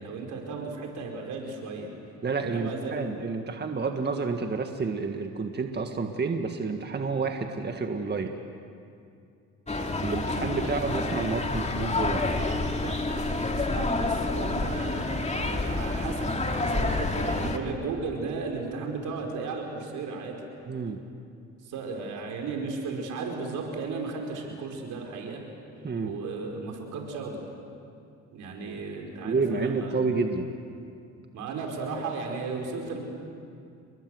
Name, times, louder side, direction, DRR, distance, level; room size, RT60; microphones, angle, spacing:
voice 1, 0.0-1.9 2.4-3.0 12.7-20.4 21.6-25.4 26.0-27.4 28.3-30.0 31.3-33.0, right 4 dB, 85° right, 1 dB, 5.2 m, -35 dB
voice 2, 2.2-8.3 10.0-12.4 20.7-21.0 25.8-26.1 29.2-30.5, right 4 dB, 35° right, 4 dB, 1.8 m, -29 dB
sound 1, 9.7-17.6, left 2 dB, 20° left, 2.3 m, -28 dB
29.5 x 22.5 x 8.0 m, 2.4 s
cardioid pair, 90°, 30 cm